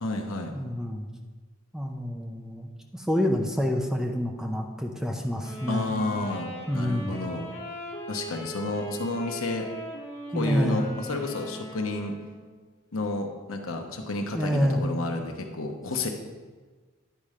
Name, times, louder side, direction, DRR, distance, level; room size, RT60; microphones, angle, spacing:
voice 1, 0.0-0.5 5.7-6.5 6.7-7.5 8.1-9.7 10.3-12.2 12.9-16.1, left 2 dB, 75° left, 3 dB, 1.0 m, -31 dB
voice 2, 0.5-1.1 1.7-5.9 6.7-7.1 10.3-10.9 14.3-14.8, equal, 5° right, 1 dB, 0.6 m, -28 dB
Wind instrument woodwind instrument, 5.4-12.6, equal, 30° left, 1.7 m, -40 dB
10.5 x 4.3 x 5.0 m, 1.3 s
head